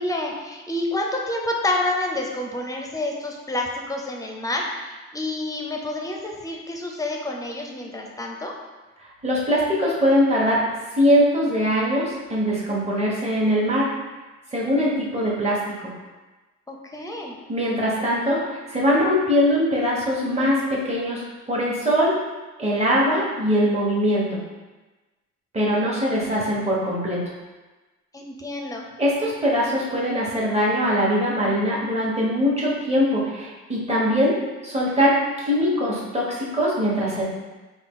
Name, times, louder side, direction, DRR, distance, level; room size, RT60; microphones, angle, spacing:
voice 1, 0.0-8.6 16.7-17.3 28.1-28.8, left 2 dB, 10° left, 0 dB, 0.6 m, -28 dB
voice 2, 9.2-10.6 10.9-13.9 14.5-15.9 17.5-22.1 22.6-24.4 25.5-27.2 29.0-34.4 34.6-37.2, equal, 20° right, -5 dB, 1.2 m, -22 dB
3.9 x 2.4 x 3.7 m, 1.2 s
cardioid pair, 90°, 30 cm